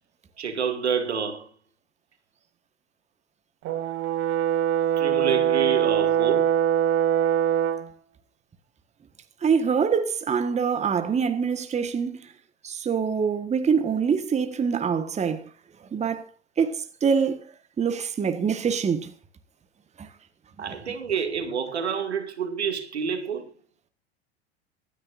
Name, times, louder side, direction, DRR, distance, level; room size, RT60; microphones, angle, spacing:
voice 1, 0.4-1.5 5.0-6.5 20.6-23.4, right 7 dB, 80° right, 2.4 m, -28 dB
Brass instrument, 3.6-7.9, right 10 dB, 40° right, 2.3 m, -23 dB
voice 2, 9.4-12.3 12.6-15.4 15.9-16.3 16.6-17.5 17.8-19.1 20.0-20.1, right 6 dB, 20° right, 1.5 m, -25 dB
25.0 x 10.0 x 2.6 m
figure-of-eight pair, 80°, 33 cm